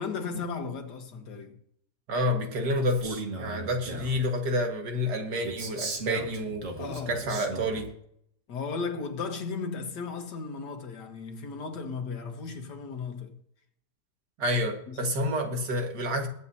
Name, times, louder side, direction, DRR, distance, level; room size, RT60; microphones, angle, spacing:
voice 1, 0.0-1.6 6.8-7.2 8.5-13.4 14.9-15.1, left 5 dB, 90° left, 2.0 m, -35 dB
voice 2, 2.1-6.7 7.1-7.9 14.4-16.3, equal, 75° right, 2.3 m, -29 dB
Male speech man speaking, 2.9-4.2 5.4-7.9, right 3 dB, 50° right, 1.9 m, -37 dB
22.0 x 8.3 x 2.8 m
omnidirectional pair, 1.8 m